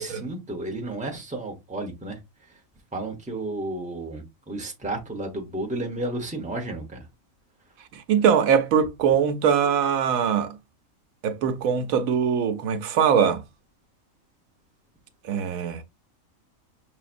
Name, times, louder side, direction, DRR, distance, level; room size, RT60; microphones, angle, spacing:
voice 1, 0.0-2.2 2.9-7.1, right 2 dB, 5° right, 0.8 m, -32 dB
voice 2, 7.9-10.6 11.2-13.4 15.2-15.8, right 7 dB, 85° right, 1.1 m, -22 dB
5.7 x 2.7 x 2.5 m
omnidirectional pair, 1.4 m